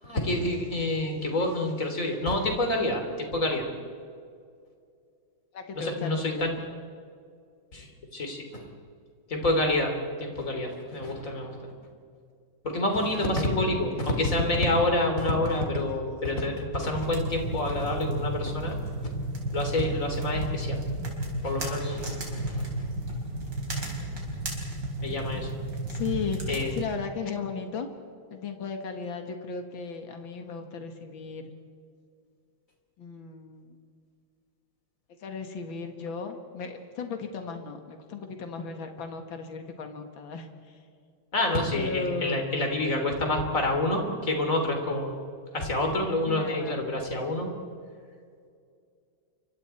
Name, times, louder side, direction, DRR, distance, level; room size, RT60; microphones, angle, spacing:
voice 1, 0.0-3.7 5.7-6.5 7.7-8.6 9.3-9.9 10.2-11.6 12.6-18.8 19.5-20.8 21.4-22.9 25.0-25.5 26.5-26.7 41.3-45.2 45.5-47.5, left 1 dB, 40° left, 3 dB, 3.7 m, -28 dB
voice 2, 5.5-6.5 13.1-14.1 25.9-26.4 26.7-27.9 28.3-31.5 33.0-33.8 35.2-40.8 41.7-42.4 46.3-46.9, left 5 dB, 75° left, 5 dB, 2.5 m, -36 dB
sound 1, 16.9-26.8, right 1 dB, 65° right, 5.0 m, -33 dB
28.5 x 25.0 x 4.5 m, 2.3 s
omnidirectional pair, 2.2 m